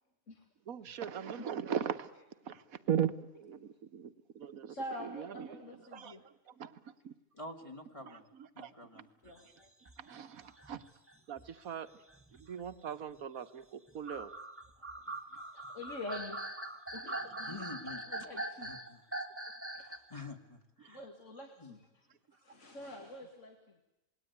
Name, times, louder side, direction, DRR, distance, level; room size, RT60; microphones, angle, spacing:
voice 1, 0.7-2.1 2.5-5.6 5.9-7.1 8.6-9.0 10.0-10.8 11.3-11.9 12.3-14.3 17.1-17.2, right 8 dB, 80° right, 11 dB, 1.6 m, -39 dB
voice 2, 4.7-6.3 9.2-9.7 14.8-14.9 15.4-16.4 16.9-17.3 18.1-18.7 19.7-19.9 20.9-21.8 22.3-23.8, left 1 dB, 60° left, 2 dB, 2.8 m, -46 dB
voice 3, 7.3-8.3 8.5-9.1 17.4-19.0 19.8-21.1 21.6-21.8, left 2 dB, 25° left, 4 dB, 2.4 m, -48 dB
sound 1, 9.3-11.5 12.1-13.2 13.9-20.1, right 1 dB, 10° right, 1.5 m, -43 dB
27.5 x 20.0 x 9.4 m, 0.90 s
omnidirectional pair, 1.5 m